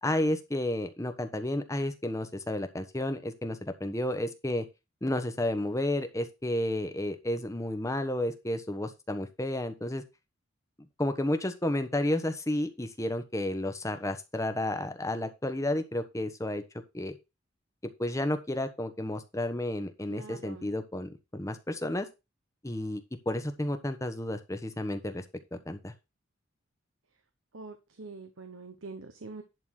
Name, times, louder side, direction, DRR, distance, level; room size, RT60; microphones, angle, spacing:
voice 1, 0.0-4.6 5.0-10.0 11.0-16.6 16.9-17.2 18.0-22.1 22.6-23.0 23.3-25.2 25.5-25.9, left 1 dB, 15° left, 8 dB, 1.1 m, -31 dB
voice 2, 20.1-20.7 27.5-29.4, right 3 dB, 85° right, 7 dB, 1.1 m, -44 dB
11.0 x 3.9 x 6.3 m, 0.26 s
head